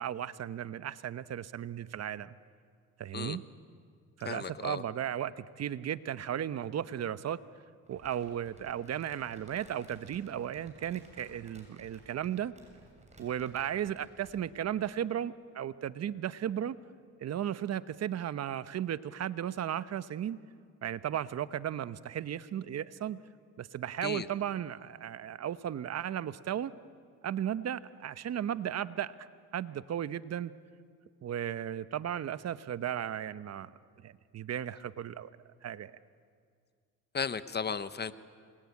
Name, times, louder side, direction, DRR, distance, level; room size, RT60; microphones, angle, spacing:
voice 1, 0.0-2.3 3.0-3.4 4.2-7.4 7.9-12.5 13.2-16.8 17.2-20.4 20.8-23.2 23.6-26.7 27.2-29.3 29.5-30.5 31.2-33.7 34.0-35.3 35.6-35.9, right 10 dB, 60° right, 15 dB, 0.9 m, -35 dB
voice 2, 4.2-4.8 24.0-24.3 37.1-38.1, left 6 dB, 35° left, 13 dB, 1.1 m, -35 dB
Crumpling crinkling, 7.9-14.5, right 1 dB, 20° right, 7.5 m, -58 dB
27.5 x 21.5 x 9.7 m, 2.1 s
cardioid pair, 90°, 30 cm